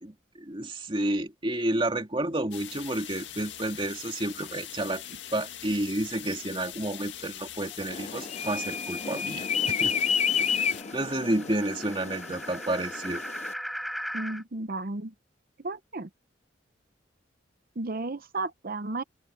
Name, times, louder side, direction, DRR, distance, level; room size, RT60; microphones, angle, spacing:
voice 1, 0.0-9.5 9.8-10.0 10.9-13.2, right 1 dB, 25° right, 2.6 m, -30 dB
sound 1, 2.5-10.8, left 11 dB, 70° left, 2.0 m, -42 dB
sound 2, 7.7-14.4, equal, ahead, 6.0 m, -40 dB
sound 3, 7.9-13.5, left 7 dB, 35° left, 0.6 m, -30 dB
voice 2, 14.1-15.1 15.6-16.1 17.8-19.0, right 2 dB, 50° right, 0.8 m, -33 dB
head